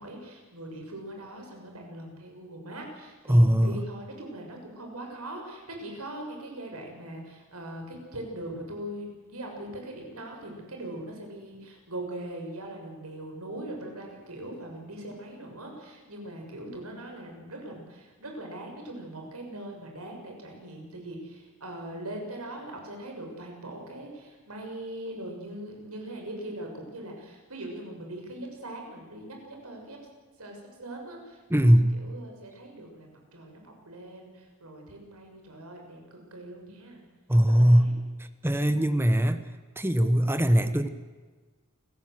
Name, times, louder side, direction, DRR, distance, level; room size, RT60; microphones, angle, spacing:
voice 1, 0.0-30.0 30.4-37.0 37.4-38.0 38.6-38.9, right 1 dB, 90° right, 2 dB, 6.6 m, -41 dB
voice 2, 3.3-3.8 31.5-31.9 37.3-37.9 38.4-39.4 39.8-40.9, equal, 10° right, 10 dB, 1.1 m, -20 dB
28.5 x 15.5 x 7.8 m, 1.4 s
head